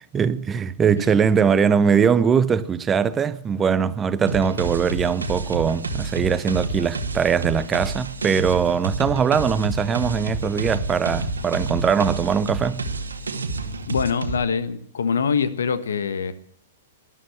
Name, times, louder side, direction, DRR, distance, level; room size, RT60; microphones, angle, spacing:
voice 1, 0.1-12.8, right 6 dB, 20° right, 0.7 m, -21 dB
sound 1, 4.3-14.4, right 2 dB, 90° right, 1.6 m, -29 dB
voice 2, 13.9-16.3, left 6 dB, 80° left, 1.3 m, -24 dB
12.5 x 11.5 x 9.6 m
hypercardioid pair, 115°, 0 cm